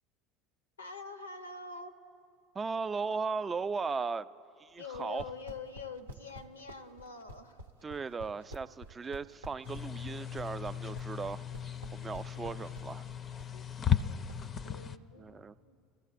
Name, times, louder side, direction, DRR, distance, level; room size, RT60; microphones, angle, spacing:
voice 1, 0.8-2.0 4.8-7.6 12.3-12.5 13.5-13.7 14.0-14.2 14.6-15.8, left 4 dB, 90° left, 10 dB, 0.6 m, -45 dB
voice 2, 2.5-4.3 4.6-5.2 7.8-11.4 11.9-13.1 15.2-15.5, right 4 dB, 25° right, 13 dB, 0.3 m, -37 dB
Carpet Footsteps, 4.8-14.4, right 1 dB, 90° right, 0.6 m, -49 dB
sound 1, 9.7-15.0, left 9 dB, 35° left, 0.4 m, -36 dB
24.5 x 14.5 x 2.5 m, 2.6 s
hypercardioid pair, 70°, 0 cm